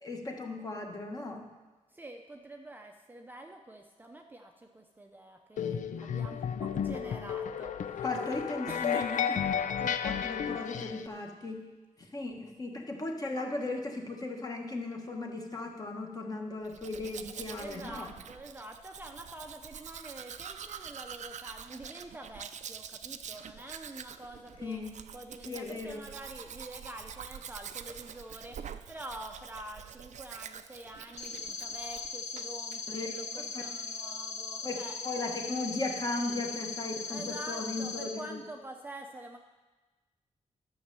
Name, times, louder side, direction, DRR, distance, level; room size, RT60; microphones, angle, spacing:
voice 1, 0.0-1.5 8.0-9.3 10.0-11.6 12.0-18.1 24.6-24.9 25.4-26.0 32.9-33.6 34.0-34.1 34.6-38.4, left 2 dB, 30° left, 2 dB, 1.3 m, -37 dB
voice 2, 1.9-8.0 8.7-9.4 9.8-10.0 17.5-24.8 25.1-35.0 37.0-39.4, right 1 dB, 15° right, 3 dB, 0.6 m, -46 dB
sound 1, 5.6-11.1, left 8 dB, 90° left, 0.5 m, -33 dB
Domestic sounds home sounds, 16.6-32.1 32.4-32.8, right 8 dB, 70° right, 0.5 m, -46 dB
sound 2, 31.2-38.0, left 4 dB, 60° left, 1.8 m, -39 dB
11.5 x 6.4 x 7.5 m, 1.2 s
wide cardioid pair, 175°, 13 cm